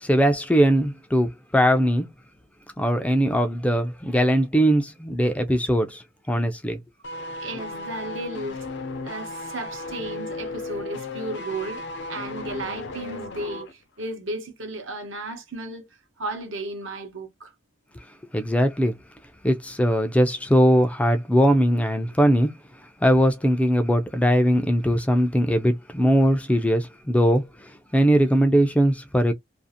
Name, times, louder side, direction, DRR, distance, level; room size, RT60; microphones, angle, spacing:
voice 1, 0.0-2.1 2.8-6.8 18.3-18.9 19.4-22.5 23.0-27.4 27.9-29.3, equal, 5° left, 0.3 m, -20 dB
sound 1, 7.0-13.7 14.0-14.1, left 2 dB, 60° left, 0.5 m, -35 dB
voice 2, 7.4-8.6 9.0-15.9 16.2-17.5, right 2 dB, 80° right, 0.9 m, -34 dB
2.5 x 2.4 x 2.7 m
head